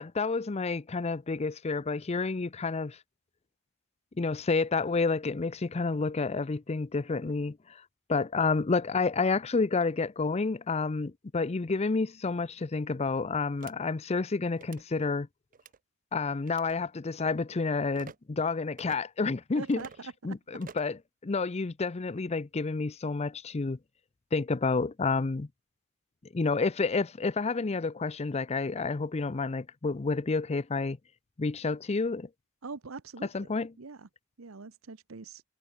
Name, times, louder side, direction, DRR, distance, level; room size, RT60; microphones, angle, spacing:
voice 1, 0.0-3.0 4.2-7.8 8.1-15.3 16.1-19.8 20.2-21.0 21.2-23.8 24.3-25.5 26.3-31.0 31.4-32.3 33.3-33.7, left 4 dB, 30° left, 0.5 m, -29 dB
sound 1, 13.6-13.7 14.5-14.8 15.5-15.8 16.5-16.8 17.9-18.2 18.8-19.0 19.7-20.0 20.6-21.0, right 6 dB, 40° right, 0.6 m, -48 dB
voice 2, 19.5-20.6 32.6-33.3 33.8-34.1 34.4-35.4, right 4 dB, 75° right, 0.9 m, -43 dB
head